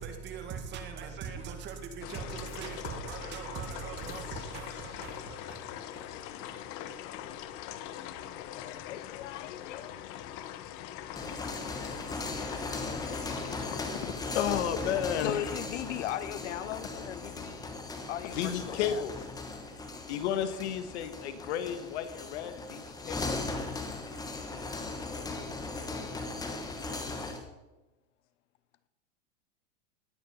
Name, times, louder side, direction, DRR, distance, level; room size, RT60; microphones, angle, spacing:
voice 1, 0.0-5.6, right 6 dB, 30° right, 2.0 m, -40 dB
sound 1, 2.0-13.9, left 11 dB, 40° left, 0.9 m, -42 dB
voice 2, 8.4-10.0 15.2-19.0, left 12 dB, 90° left, 1.0 m, -39 dB
sound 2, 11.0-27.4, left 3 dB, 10° left, 1.5 m, -38 dB
voice 3, 13.8-15.5 15.9-16.0 18.2-19.1 20.1-23.4, left 9 dB, 65° left, 1.7 m, -33 dB
19.0 x 8.8 x 5.6 m
supercardioid pair, 150°, 36 cm